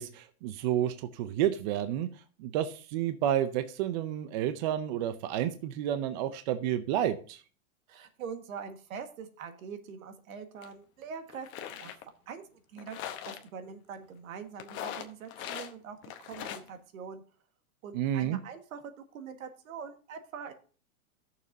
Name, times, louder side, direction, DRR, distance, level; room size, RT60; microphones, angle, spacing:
voice 1, 0.0-2.1 2.4-7.4 17.9-18.4, right 11 dB, 35° right, 10 dB, 0.5 m, -30 dB
voice 2, 7.9-11.9 12.3-13.0 13.2-17.2 17.8-20.5, right 6 dB, 70° right, 7 dB, 1.7 m, -43 dB
sound 1, 10.6-10.7 11.3-12.0 12.8-13.4 14.6-15.7 16.0-16.7, left 10 dB, 30° left, 0.9 m, -40 dB
15.0 x 6.7 x 2.7 m, 0.40 s
supercardioid pair, 150°, 42 cm